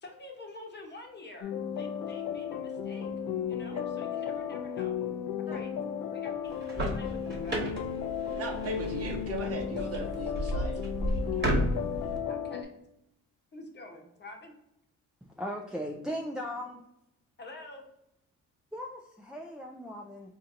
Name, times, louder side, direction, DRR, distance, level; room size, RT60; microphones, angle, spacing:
voice 1, 0.0-1.5 1.8-3.1 3.5-5.0 5.5-5.7 6.1-7.7 11.4-11.7 12.3-12.7 13.5-14.5 17.4-17.8, left 2 dB, 35° left, 2 dB, 0.9 m, -48 dB
sound 1, 1.4-12.6, left 8 dB, 70° left, 0.4 m, -34 dB
sound 2, 6.5-12.2, equal, 35° right, 1.2 m, -33 dB
voice 2, 8.4-10.8, right 3 dB, 50° right, 3 dB, 0.8 m, -38 dB
voice 3, 15.4-16.8 18.7-20.3, equal, 5° right, -1 dB, 0.3 m, -37 dB
4.3 x 2.7 x 2.5 m, 0.82 s
cardioid pair, 90°, 30 cm